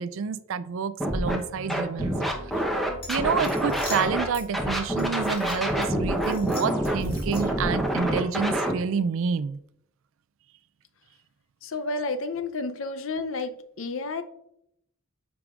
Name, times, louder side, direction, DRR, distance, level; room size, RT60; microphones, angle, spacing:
voice 1, 0.0-2.1 2.5-2.6 3.1-9.6, right 6 dB, 65° right, 14 dB, 0.4 m, -28 dB
Scratching (performance technique), 1.0-1.4 1.7-4.2 4.5-8.7, right 1 dB, ahead, 0.8 m, -26 dB
sound 1, 1.1-8.0, right 1 dB, 80° right, 0.9 m, -42 dB
sound 2, 3.0-4.5 5.0-5.9 6.2-7.7, left 3 dB, 25° left, 1.8 m, -42 dB
voice 2, 11.6-13.5 13.8-14.2, left 3 dB, 65° left, 9 dB, 0.6 m, -30 dB
8.7 x 4.8 x 2.4 m, 0.75 s
head